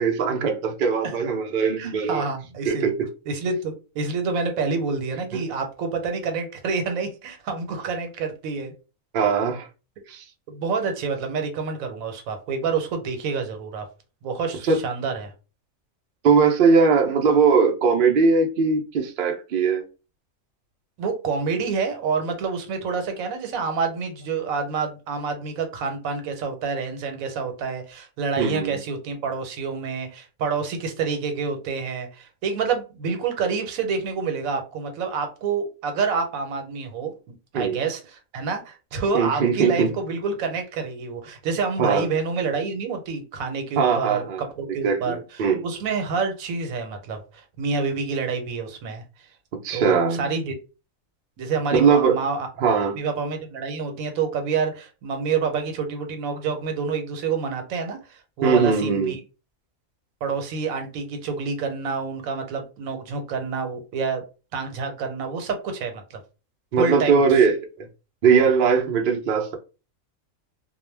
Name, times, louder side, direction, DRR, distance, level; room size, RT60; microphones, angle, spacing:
voice 1, 0.0-2.3 2.6-3.1 5.3-5.4 9.1-9.7 10.1-10.2 14.6-14.8 16.2-19.8 28.4-28.8 37.5-37.8 39.1-39.9 41.8-42.1 43.8-44.4 44.8-45.6 49.6-50.3 51.7-52.2 52.6-53.0 58.4-59.1 66.7-67.9 68.2-69.5, right 5 dB, 65° right, 0.5 m, -20 dB
voice 2, 1.8-2.9 3.3-8.7 10.5-13.8 14.2-15.3 21.0-49.0 49.7-50.5 51.4-52.5 52.9-59.2 60.2-64.2 64.5-66.2 66.8-67.5, right 5 dB, 80° right, 1.1 m, -28 dB
2.3 x 2.1 x 3.2 m
omnidirectional pair, 1.4 m